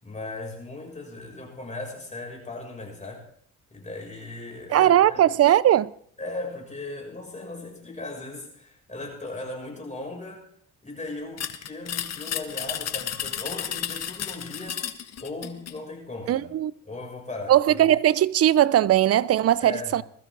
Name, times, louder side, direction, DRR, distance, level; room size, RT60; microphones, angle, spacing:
voice 1, 0.0-3.2 3.7-5.3 6.2-10.5 10.8-14.9 15.2-16.5 16.9-17.9 19.6-20.0, left 2 dB, 25° left, 7.0 m, -37 dB
voice 2, 4.7-5.9 16.3-16.7 17.5-20.0, right 12 dB, 50° right, 0.6 m, -19 dB
sound 1, 11.4-15.8, left 9 dB, 60° left, 1.3 m, -32 dB
21.0 x 14.0 x 3.9 m
cardioid pair, 90°, 30 cm